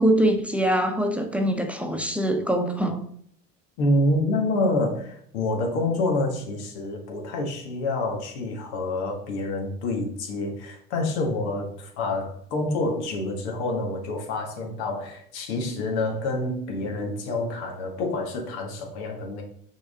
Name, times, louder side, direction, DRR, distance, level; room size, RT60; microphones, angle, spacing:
voice 1, 0.0-3.0, right 1 dB, 5° right, 0.8 m, -23 dB
voice 2, 3.8-19.4, left 2 dB, 85° left, 1.7 m, -27 dB
6.1 x 4.7 x 3.6 m
supercardioid pair, 95°, 32 cm